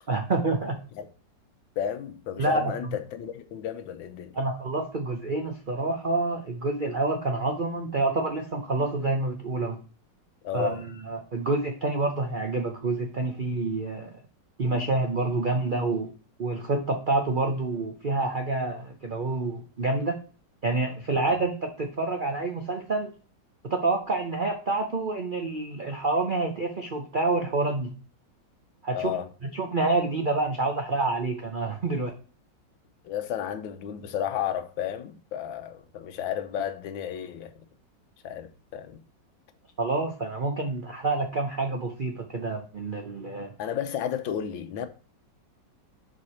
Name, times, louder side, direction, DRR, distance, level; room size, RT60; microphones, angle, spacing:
voice 1, 0.1-0.8 2.4-3.0 4.3-9.8 10.5-14.1 14.6-16.1 16.4-20.2 20.6-23.1 23.7-27.9 28.8-29.1 29.4-32.1 39.8-43.5, right 3 dB, 65° right, 0.5 m, -28 dB
voice 2, 1.8-4.3 10.4-10.8 28.9-29.3 33.0-37.5 38.2-39.0 43.6-44.9, left 9 dB, 90° left, 1.5 m, -32 dB
6.4 x 4.8 x 4.2 m
omnidirectional pair, 2.0 m